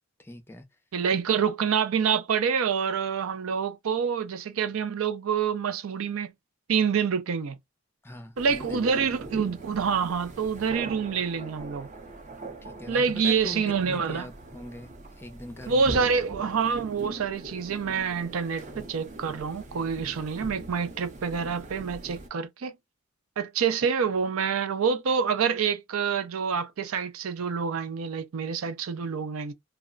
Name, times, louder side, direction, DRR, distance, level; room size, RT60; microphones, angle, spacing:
voice 1, 0.2-0.6 8.0-8.9 9.1-9.3 12.6-14.9 15.2-15.9, left 1 dB, 10° left, 0.4 m, -41 dB
voice 2, 0.9-6.3 6.7-7.6 8.4-11.9 12.9-14.3 15.7-22.7 23.4-29.5, right 6 dB, 80° right, 0.5 m, -27 dB
sound 1, 8.4-22.3, right 2 dB, 35° right, 0.7 m, -42 dB
2.3 x 2.1 x 3.6 m
head